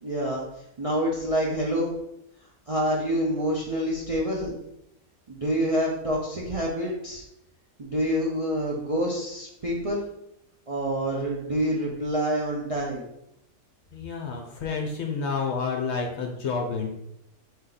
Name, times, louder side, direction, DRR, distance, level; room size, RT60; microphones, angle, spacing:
voice 1, 0.0-0.4 0.8-1.9 2.7-4.5 5.3-7.2 7.8-10.0 10.7-13.1, equal, 45° right, -4 dB, 0.4 m, -27 dB
voice 2, 13.9-16.9, left 5 dB, 60° left, 1 dB, 0.8 m, -29 dB
4.3 x 2.8 x 3.8 m, 0.80 s
omnidirectional pair, 1.6 m